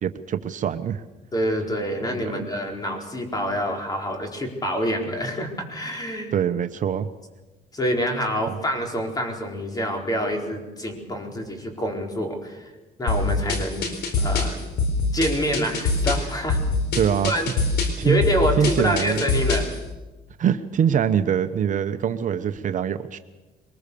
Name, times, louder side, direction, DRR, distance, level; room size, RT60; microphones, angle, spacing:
voice 1, 0.0-1.0 2.3-2.4 6.3-7.1 8.5-8.6 17.0-17.4 18.0-18.2 18.6-19.4 20.4-23.2, right 8 dB, 50° right, 8 dB, 1.0 m, -23 dB
voice 2, 1.3-6.3 7.7-12.7 13.0-13.9 14.2-14.6 15.1-16.6 17.3-17.5 18.0-19.7, equal, 20° left, 2 dB, 4.4 m, -26 dB
sound 1, 13.1-19.8, left 3 dB, 75° left, 4.2 m, -24 dB
23.0 x 21.0 x 7.0 m, 1.2 s
cardioid pair, 110°, 17 cm